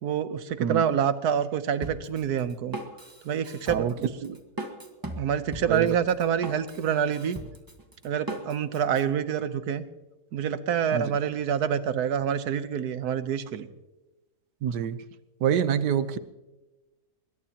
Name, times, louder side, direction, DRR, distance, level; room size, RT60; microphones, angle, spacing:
voice 1, 0.0-2.8 3.2-4.1 5.2-7.4 8.0-9.8 10.3-13.7, right 8 dB, 75° right, 12 dB, 1.4 m, -27 dB
Drum kit, 1.8-9.0, right 1 dB, 15° right, 1.4 m, -39 dB
voice 2, 14.6-15.0 15.4-16.2, right 8 dB, 90° right, 13 dB, 1.5 m, -26 dB
21.5 x 21.0 x 2.9 m, 1.1 s
omnidirectional pair, 1.7 m